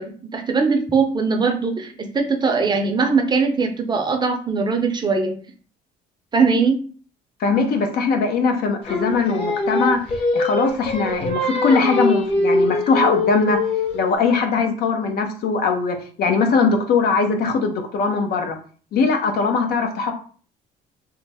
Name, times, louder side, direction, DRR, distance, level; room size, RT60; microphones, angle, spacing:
voice 1, 0.0-5.4 6.3-6.8, right 4 dB, 25° right, 4 dB, 0.6 m, -20 dB
voice 2, 7.4-13.6 13.9-18.6 18.9-20.1, left 4 dB, 65° left, 5 dB, 0.7 m, -20 dB
Singing, 8.9-14.1, left 2 dB, 35° left, 0.9 m, -22 dB
3.1 x 2.0 x 3.4 m, 0.42 s
cardioid pair, 110°, 17 cm